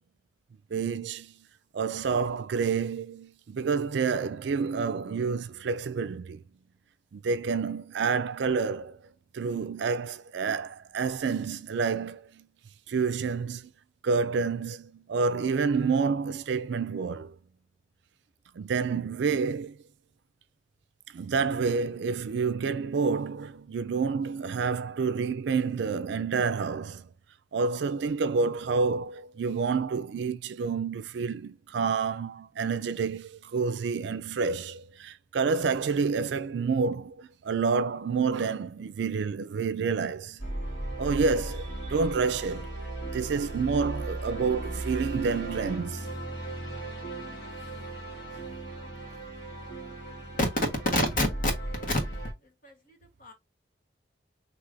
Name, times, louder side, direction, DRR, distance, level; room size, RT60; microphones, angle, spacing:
voice 1, 0.7-1.3 1.7-6.4 7.1-9.0 9.3-12.5 12.9-13.7 14.0-17.3 18.6-19.8 21.1-27.1 27.5-40.4 41.0-42.7 43.1-46.1, right 5 dB, 65° right, 0.4 m, -29 dB
sound 1, 40.4-52.3, right 2 dB, 70° left, 1.8 m, -36 dB
voice 2, 50.3-51.3 51.6-52.0 52.6-53.3, left 1 dB, 45° left, 1.2 m, -29 dB
4.6 x 3.0 x 2.5 m
head